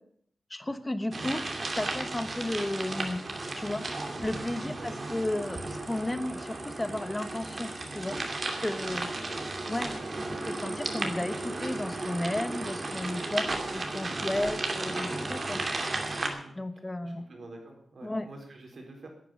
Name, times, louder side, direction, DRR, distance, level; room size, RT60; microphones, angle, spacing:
voice 1, 0.5-3.2 3.5-3.8 4.2-8.2 8.6-9.1 9.6-9.9 10.4-15.6 16.6-17.3 18.0-18.3, left 1 dB, 15° left, 11 dB, 1.1 m, -33 dB
sound 1, 1.1-16.3, right 2 dB, 40° right, 2.4 m, -34 dB
voice 2, 4.5-5.0 9.0-9.7 14.0-14.1 16.2-16.6 17.0-19.1, right 2 dB, 60° right, 2 dB, 4.2 m, -48 dB
11.5 x 9.4 x 9.3 m, 0.64 s
wide cardioid pair, 135°, 0 cm